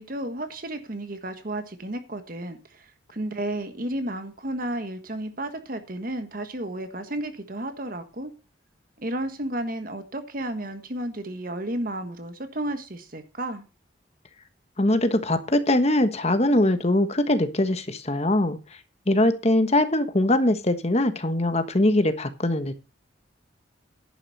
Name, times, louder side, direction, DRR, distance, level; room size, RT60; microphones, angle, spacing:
voice 1, 0.0-8.3 9.0-13.6, right 1 dB, 50° right, 8 dB, 1.5 m, -32 dB
voice 2, 14.8-18.6 19.1-22.8, left 1 dB, 35° left, 10 dB, 1.3 m, -22 dB
11.0 x 9.3 x 4.1 m, 0.30 s
head